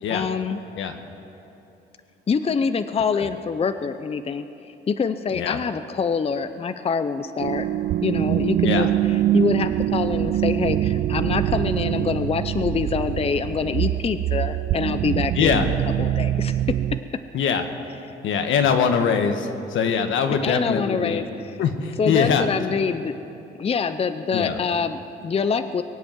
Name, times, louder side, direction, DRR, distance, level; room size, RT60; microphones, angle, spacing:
voice 1, 0.1-0.6 2.3-4.5 4.9-7.7 8.0-8.9 9.3-16.6 20.4-21.6 22.0-23.1 23.6-25.8, left 5 dB, 30° left, 11 dB, 0.6 m, -25 dB
sound 1, 7.4-17.0, right 13 dB, 60° right, 0.4 m, -24 dB
voice 2, 15.3-15.7 17.3-17.6 18.2-21.2 21.6-22.4 24.3-24.6, left 6 dB, 80° left, 6 dB, 1.3 m, -22 dB
22.5 x 8.2 x 7.5 m, 3.0 s
cardioid pair, 90°, 20 cm